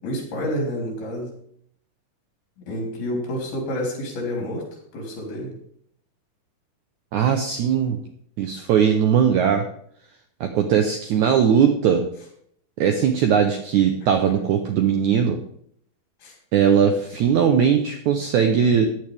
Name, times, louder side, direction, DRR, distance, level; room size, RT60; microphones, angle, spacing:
voice 1, 0.0-1.3 2.7-4.6 4.9-5.5 16.2-16.3, equal, 75° left, 0 dB, 5.5 m, -28 dB
voice 2, 7.1-8.0 8.4-9.7 10.4-12.0 12.8-15.4 16.5-18.9, right 7 dB, 80° right, 5 dB, 1.7 m, -19 dB
15.0 x 10.0 x 3.5 m, 0.67 s
omnidirectional pair, 4.5 m